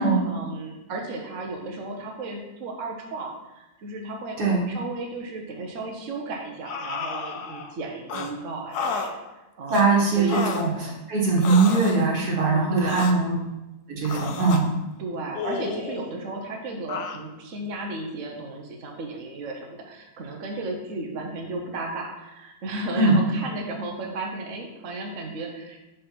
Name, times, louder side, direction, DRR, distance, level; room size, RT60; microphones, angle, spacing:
voice 1, 0.0-4.4 4.7-9.9 10.1-10.4 12.5-13.2 15.0-25.9, right 2 dB, 60° right, 1 dB, 1.1 m, -34 dB
sound 1, 6.6-7.7 8.1-8.3 8.7-9.1 9.7-9.9 10.3-10.7 11.4-12.0 12.8-13.2 14.0-14.6 15.3-16.1 16.9-17.2, left 5 dB, 85° left, 1.2 m, -31 dB
voice 2, 9.7-13.4 13.9-14.7 22.9-23.2, right 3 dB, 80° right, -3 dB, 2.2 m, -21 dB
5.0 x 4.4 x 6.0 m, 1.0 s
omnidirectional pair, 1.7 m